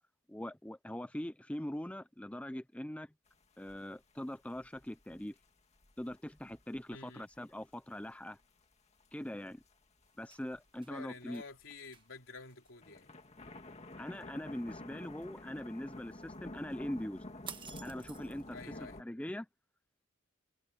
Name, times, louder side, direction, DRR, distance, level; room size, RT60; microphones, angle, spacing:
voice 1, 0.3-3.1 3.6-5.3 6.0-8.4 9.1-9.6 10.2-11.4 14.0-17.3 17.8-19.5, left 1 dB, 5° left, 0.5 m, -42 dB
sound 1, 3.3-3.4 3.7-7.7 8.2-8.6 9.0-10.1 10.5-12.0 12.5-19.0, left 1 dB, 30° left, 2.1 m, -50 dB
voice 2, 6.9-7.3 10.9-13.1 18.5-19.0, left 4 dB, 65° left, 3.3 m, -50 dB
sound 2, 10.1-10.9 11.3-11.5 11.9-12.1 12.5-12.7 17.5-18.5, right 7 dB, 25° right, 1.3 m, -49 dB
head